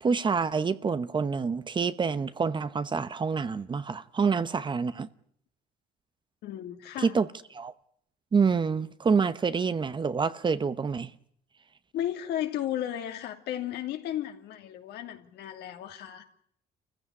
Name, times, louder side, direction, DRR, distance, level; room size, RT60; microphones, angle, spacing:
voice 1, 0.0-5.1 7.0-7.3 7.5-7.7 8.3-11.1, right 5 dB, 30° right, 0.9 m, -27 dB
voice 2, 6.4-7.1 11.9-16.2, left 11 dB, 80° left, 2.7 m, -34 dB
27.5 x 15.5 x 9.9 m
cardioid pair, 110°, 17 cm